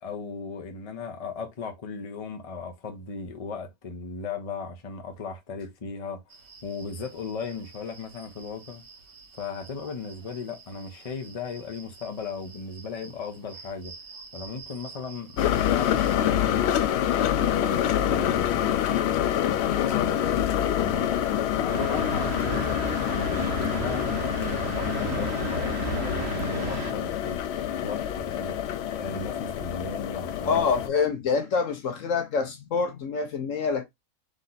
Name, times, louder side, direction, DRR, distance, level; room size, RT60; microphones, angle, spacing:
voice 1, 0.0-6.2 6.6-8.8 9.3-13.9 14.3-16.7 17.3-30.6, left 4 dB, 30° left, 0.7 m, -37 dB
sound 1, 6.3-16.2, right 4 dB, 40° right, 1.1 m, -49 dB
sound 2, 15.4-30.9, left 10 dB, 80° left, 0.6 m, -26 dB
sound 3, 21.7-26.9, right 6 dB, 60° right, 1.2 m, -34 dB
voice 2, 30.4-33.8, left 5 dB, 60° left, 1.0 m, -26 dB
4.0 x 3.0 x 3.9 m
omnidirectional pair, 1.7 m